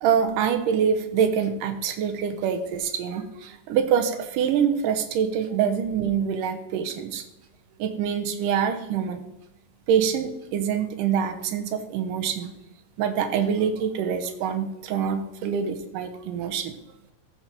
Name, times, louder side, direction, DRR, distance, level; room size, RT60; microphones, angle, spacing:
voice 1, 0.0-7.2 7.8-9.2 9.9-12.5 13.0-16.8, right 7 dB, 75° right, 7 dB, 2.5 m, -25 dB
14.0 x 5.9 x 4.5 m, 0.91 s
omnidirectional pair, 3.9 m